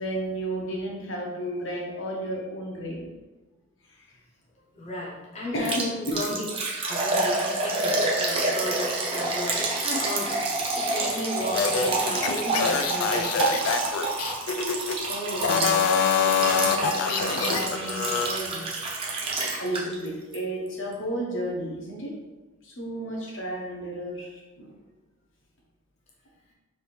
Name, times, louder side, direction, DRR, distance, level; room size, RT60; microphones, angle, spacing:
voice 1, 0.0-3.1 5.5-6.4 14.6-18.6 19.6-22.1 22.6-24.7, right 1 dB, 60° left, -2 dB, 0.9 m, -33 dB
voice 2, 4.7-6.3 6.8-10.4 10.7-13.5, left 2 dB, 30° left, -4 dB, 0.8 m, -34 dB
Liquid, 5.7-20.1 20.3-20.4 20.9-21.0, right 3 dB, 25° right, 0.5 m, -28 dB
sound 1, 11.5-15.0 15.4-18.3, left 6 dB, 85° left, 0.3 m, -25 dB
3.5 x 2.6 x 4.2 m, 1.2 s
head